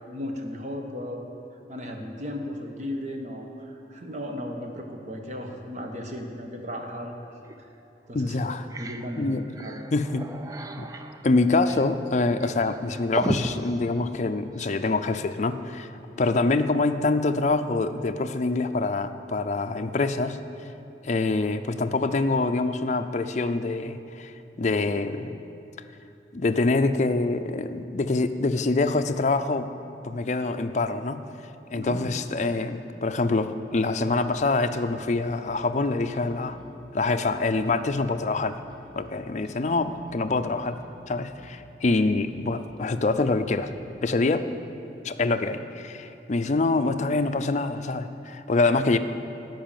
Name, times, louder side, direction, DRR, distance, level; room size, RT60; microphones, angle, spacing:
voice 1, 0.1-1.2 1.7-7.1 8.1-9.8 31.8-32.0, left 1 dB, 40° right, 3 dB, 1.1 m, -35 dB
sound 1, 7.4-7.6 8.1-8.2 8.5-14.8, right 1 dB, 20° right, 0.4 m, -37 dB
voice 2, 8.1-8.7 9.2-9.5 9.9-10.3 10.8-10.9 11.2-20.4 21.0-25.4 26.3-29.7 30.0-31.3 31.7-36.6 36.9-38.6 39.0-40.8 41.1-43.7 44.0-44.4 45.0-49.0, left 3 dB, 40° left, 9 dB, 0.5 m, -25 dB
sound 2, 34.6-43.8, left 1 dB, 5° left, 1.7 m, -52 dB
12.5 x 5.5 x 8.9 m, 2.7 s
head